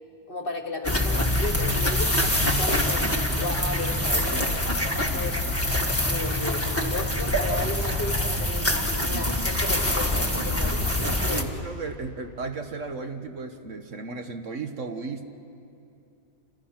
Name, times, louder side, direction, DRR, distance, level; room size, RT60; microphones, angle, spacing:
voice 1, 0.3-4.4 4.9-5.4 6.0-11.6, left 2 dB, 40° left, 6 dB, 1.5 m, -35 dB
sound 1, 0.8-11.4, left 1 dB, 10° left, 1.6 m, -25 dB
voice 2, 4.1-4.5 5.0-5.6 11.0-15.2, right 4 dB, 55° right, 6 dB, 1.4 m, -35 dB
28.0 x 27.0 x 5.9 m, 2.7 s
omnidirectional pair, 1.6 m